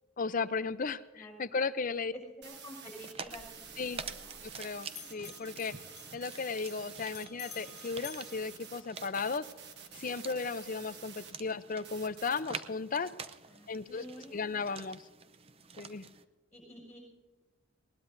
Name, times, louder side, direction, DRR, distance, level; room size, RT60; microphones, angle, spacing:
voice 1, 0.2-2.1 3.8-4.0 4.4-5.7 6.1-9.4 9.9-13.1 13.7-14.0 14.3-15.0 15.8-16.1, left 4 dB, 40° left, 14 dB, 0.5 m, -35 dB
voice 2, 1.1-1.5 2.1-4.4 13.5-14.7 16.5-17.0, equal, 15° left, 0 dB, 6.2 m, -50 dB
sound 1, 2.4-11.3 11.8-12.4, right 7 dB, 50° right, 1.3 m, -50 dB
sound 2, 3.0-16.3, right 5 dB, 25° right, 0.5 m, -48 dB
Bell, 3.2-4.6 4.9-9.3, left 10 dB, 70° left, 1.3 m, -53 dB
20.5 x 19.5 x 2.6 m, 1.3 s
head